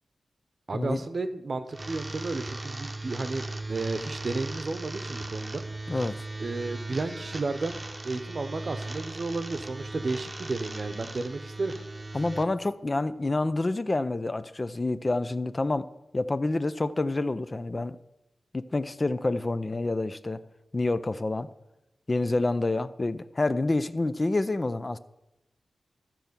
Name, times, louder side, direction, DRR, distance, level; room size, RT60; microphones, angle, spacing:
voice 1, 0.7-5.6 6.4-7.8 8.0-11.7, right 3 dB, 55° right, 0.8 m, -32 dB
sound 1, 1.7-12.4, right 2 dB, 25° right, 0.8 m, -38 dB
voice 2, 12.1-15.9 16.1-18.0 18.5-20.4 20.7-21.5 22.1-25.0, left 2 dB, 35° left, 0.4 m, -28 dB
13.0 x 4.5 x 6.8 m
wide cardioid pair, 75°, 0 cm